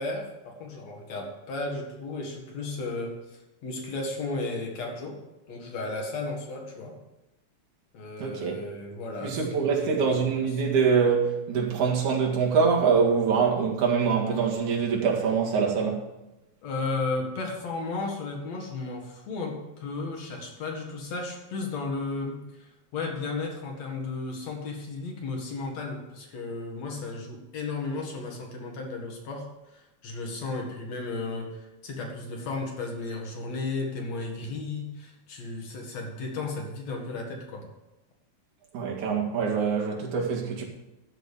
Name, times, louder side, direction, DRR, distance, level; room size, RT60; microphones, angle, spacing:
voice 1, 0.0-5.2 5.5-7.0 7.9-10.4 16.6-37.7, left 3 dB, 65° left, 3.1 m, -34 dB
voice 2, 8.2-8.6 9.2-16.0 38.7-40.6, right 5 dB, 80° right, 3.4 m, -24 dB
13.0 x 5.2 x 8.3 m
omnidirectional pair, 3.4 m